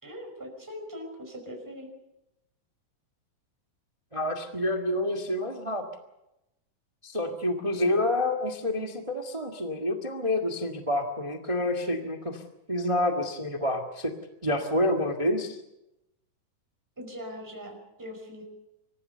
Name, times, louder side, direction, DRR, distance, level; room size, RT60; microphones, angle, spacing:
voice 1, 0.0-1.9 17.0-18.4, equal, 5° right, 2 dB, 4.9 m, -41 dB
voice 2, 4.1-5.8 7.0-12.4 12.7-14.1 14.4-15.6, left 1 dB, 20° right, 3 dB, 0.8 m, -28 dB
25.0 x 15.5 x 6.9 m, 0.91 s
omnidirectional pair, 3.8 m